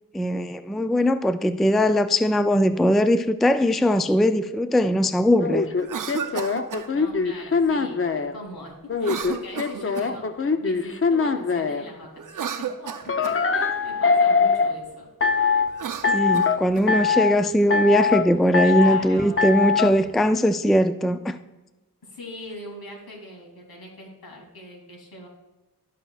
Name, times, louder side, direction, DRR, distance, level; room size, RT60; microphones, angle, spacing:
voice 1, 0.1-5.7 16.1-21.4, equal, ahead, 0.4 m, -20 dB
sound 1, 5.4-8.3 8.9-11.8 13.1-14.7 15.2-15.7 16.0-16.6 16.9-17.3 17.7-18.2 18.5-19.0 19.4-19.9, left 5 dB, 35° left, 0.7 m, -22 dB
Cough, 5.8-6.9 9.0-10.2 12.2-13.4 15.6-16.9, right 7 dB, 60° right, 0.7 m, -33 dB
voice 2, 6.9-15.1 18.6-19.4 22.0-25.3, left 1 dB, 75° left, 2.9 m, -42 dB
15.0 x 5.7 x 2.4 m
cardioid pair, 50°, 37 cm